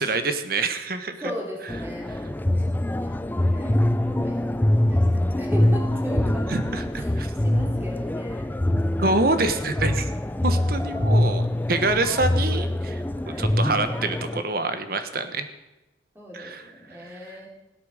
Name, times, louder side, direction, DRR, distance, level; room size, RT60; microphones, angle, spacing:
voice 1, 0.0-1.2 2.1-2.3 6.2-7.3 9.0-10.1 10.4-13.0 13.4-15.5 16.3-17.4, right 2 dB, 55° right, 9 dB, 1.2 m, -26 dB
voice 2, 1.2-6.8 7.4-8.5 13.2-13.5 16.2-17.5, equal, 15° right, -2 dB, 3.5 m, -38 dB
sound 1, 1.7-14.4, left 1 dB, 10° left, 0.4 m, -24 dB
16.5 x 8.6 x 6.6 m, 0.99 s
head